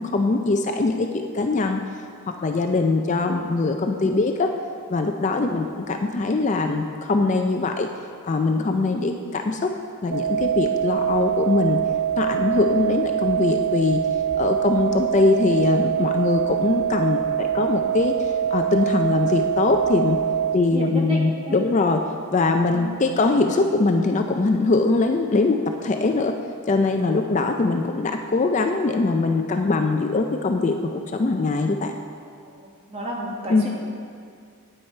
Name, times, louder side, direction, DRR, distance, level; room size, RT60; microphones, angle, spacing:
voice 1, 0.0-1.8 2.4-4.5 4.9-7.9 8.2-9.7 10.0-11.8 12.2-14.0 14.4-20.2 20.5-22.0 22.3-26.4 26.7-31.9 33.5-33.7, left 3 dB, 30° left, 5 dB, 0.4 m, -22 dB
sound 1, 10.1-20.5, right 9 dB, 80° right, 0.6 m, -24 dB
voice 2, 20.7-21.2 21.5-21.6 22.7-22.9 32.6-33.7, right 1 dB, 25° right, -3 dB, 1.5 m, -32 dB
9.4 x 8.8 x 4.4 m, 2.2 s
head